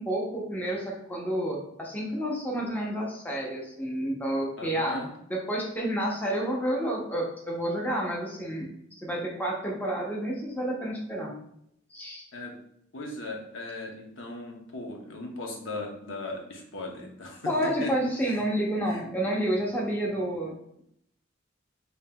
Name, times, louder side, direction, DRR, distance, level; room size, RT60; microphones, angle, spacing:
voice 1, 0.0-5.0 5.3-11.4 11.9-12.2 17.5-20.8, right 1 dB, 10° left, -3 dB, 0.7 m, -30 dB
voice 2, 4.6-5.1 12.3-12.6 12.9-17.5 17.8-17.9 18.2-18.5 18.8-19.0, left 2 dB, 75° left, 1 dB, 0.7 m, -38 dB
5.2 x 2.8 x 2.2 m, 0.74 s
head